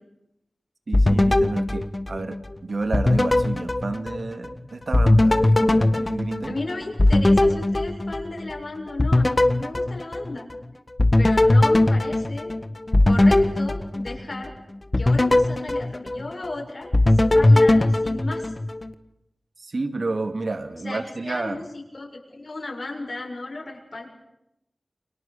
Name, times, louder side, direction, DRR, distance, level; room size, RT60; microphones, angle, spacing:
sound 1, 0.9-2.5 2.9-4.5 4.9-8.6 9.0-10.6 11.0-14.5 14.9-16.5 16.9-18.9, left 2 dB, 40° left, 1.7 m, -19 dB
voice 1, 0.9-6.5 19.6-21.6, right 3 dB, 70° right, 8 dB, 2.4 m, -30 dB
voice 2, 6.5-10.5 11.2-12.5 13.1-14.5 15.0-18.5 20.8-24.1, left 2 dB, 65° left, 1 dB, 7.0 m, -34 dB
29.5 x 24.5 x 6.9 m, 0.85 s
cardioid pair, 45°, 0 cm